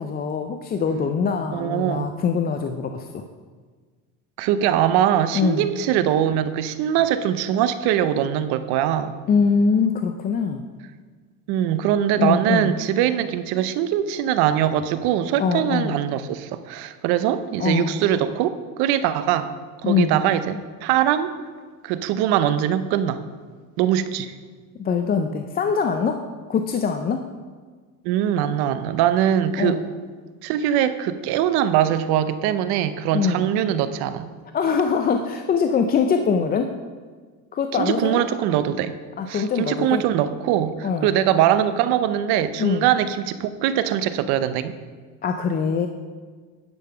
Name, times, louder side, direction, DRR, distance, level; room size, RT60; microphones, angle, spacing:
voice 1, 0.0-3.2 5.3-5.7 9.3-10.6 12.2-12.7 15.4-16.0 17.6-18.0 19.8-20.1 24.8-26.2 26.5-27.2 29.6-29.9 33.1-33.4 34.5-36.7 37.5-38.3 39.2-40.0 40.8-41.2 42.6-42.9 45.2-45.9, left 5 dB, 25° left, 6 dB, 0.4 m, -23 dB
voice 2, 1.5-2.1 4.4-9.2 11.5-18.5 18.8-19.5 19.8-21.3 21.8-23.2 23.8-24.3 28.0-29.8 30.4-34.3 37.7-38.9 39.3-44.7, right 10 dB, 65° right, 12 dB, 0.7 m, -22 dB
10.5 x 5.8 x 5.7 m, 1.5 s
cardioid pair, 130°, 41 cm